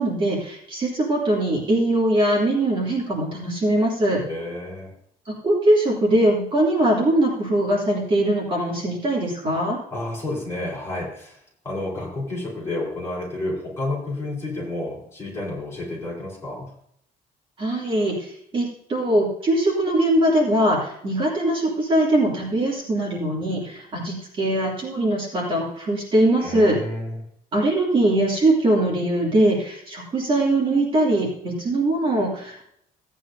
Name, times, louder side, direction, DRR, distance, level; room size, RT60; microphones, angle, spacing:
voice 1, 0.0-4.2 5.4-9.8 17.6-26.8 27.5-32.6, right 1 dB, 35° right, -4 dB, 2.8 m, -21 dB
voice 2, 4.1-4.9 9.9-11.4 11.6-16.7 26.3-27.2, left 2 dB, 15° left, -5 dB, 4.3 m, -30 dB
16.5 x 9.3 x 2.7 m, 0.71 s
cardioid pair, 175°, 16 cm